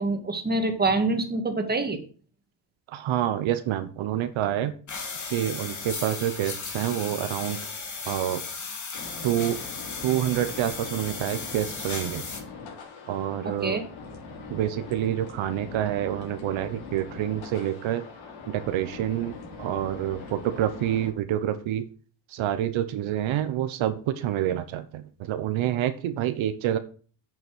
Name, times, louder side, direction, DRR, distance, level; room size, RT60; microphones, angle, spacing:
voice 1, 0.0-2.0 13.4-13.8, right 2 dB, 20° right, 5 dB, 2.1 m, -26 dB
voice 2, 2.9-4.7 5.3-7.6 8.1-8.4 9.2-9.6 10.0-12.2 13.1-13.8 14.5-18.0 18.5-19.3 19.6-21.8 22.3-26.8, right 11 dB, 85° right, 9 dB, 1.1 m, -27 dB
sound 1, 4.9-12.4, left 4 dB, 40° left, 2.8 m, -36 dB
sound 2, 8.9-21.1, left 4 dB, 85° left, 4.3 m, -42 dB
8.5 x 7.4 x 6.2 m, 0.41 s
cardioid pair, 120°, 46 cm